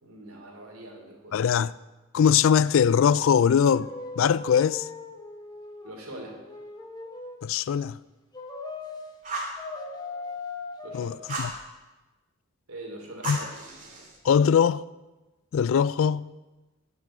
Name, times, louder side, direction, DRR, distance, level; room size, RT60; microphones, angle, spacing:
voice 1, 0.0-1.4 5.8-6.4 10.8-11.1 12.7-14.1, right 1 dB, 85° right, 3.0 m, -43 dB
voice 2, 1.3-1.7 2.1-3.9 4.2-4.9 7.4-8.0 10.9-11.5 13.2-13.4 14.2-14.8 15.5-16.2, left 7 dB, 65° left, 0.3 m, -21 dB
sound 1, 3.5-7.5 8.3-9.0 9.6-11.1, left 3 dB, 20° left, 1.1 m, -39 dB
Fire, 9.2-9.6 11.3-11.6 13.2-14.2, right 2 dB, 40° right, 2.3 m, -34 dB
10.5 x 6.1 x 8.7 m
head